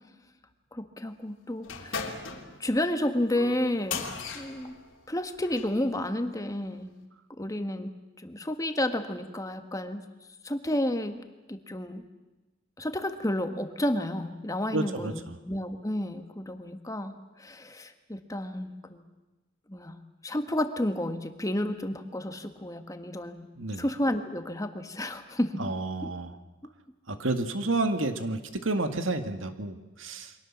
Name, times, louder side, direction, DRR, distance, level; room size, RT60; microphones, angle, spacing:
voice 1, 0.7-2.1 2.6-4.0 4.3-4.7 5.1-6.9 7.3-7.9 8.2-10.0 10.4-11.2 11.5-12.0 12.8-19.0 19.7-23.5 23.8-25.6 26.0-26.1, left 1 dB, 15° left, 7 dB, 1.6 m, -31 dB
sound 1, 1.6-5.8, left 5 dB, 85° left, 3.3 m, -38 dB
voice 2, 14.7-15.4 23.6-23.9 25.6-26.4 27.1-30.3, right 2 dB, 90° right, 8 dB, 2.0 m, -30 dB
29.0 x 24.0 x 7.4 m, 1.1 s
head